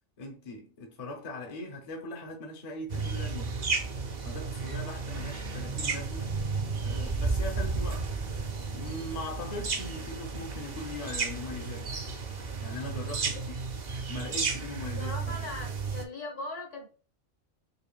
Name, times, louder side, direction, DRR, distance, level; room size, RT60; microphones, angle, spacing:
voice 1, 0.2-3.6 4.2-6.4 6.8-8.1 8.7-13.6 14.1-15.1, left 2 dB, 35° left, 0.7 m, -40 dB
sound 1, 2.9-16.0, right 4 dB, 55° right, 0.5 m, -33 dB
voice 2, 15.0-16.9, left 2 dB, 65° left, 1.6 m, -39 dB
5.0 x 2.5 x 2.3 m
omnidirectional pair, 1.3 m